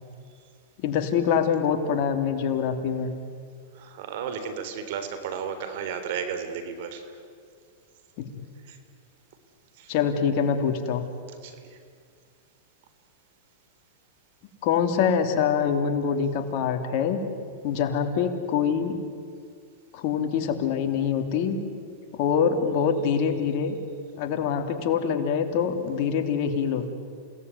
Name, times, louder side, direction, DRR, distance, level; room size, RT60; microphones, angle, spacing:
voice 1, 0.8-3.1 8.2-8.4 9.9-11.0 14.6-17.2 17.6-19.0 19.9-21.6 22.1-23.8 24.2-26.9, left 7 dB, 55° left, 5 dB, 3.1 m, -25 dB
voice 2, 3.8-7.0 8.7-8.8 9.8-9.9 11.4-11.8, right 7 dB, 60° right, 9 dB, 3.7 m, -34 dB
29.0 x 18.0 x 9.5 m, 2.1 s
hypercardioid pair, 125°, 0 cm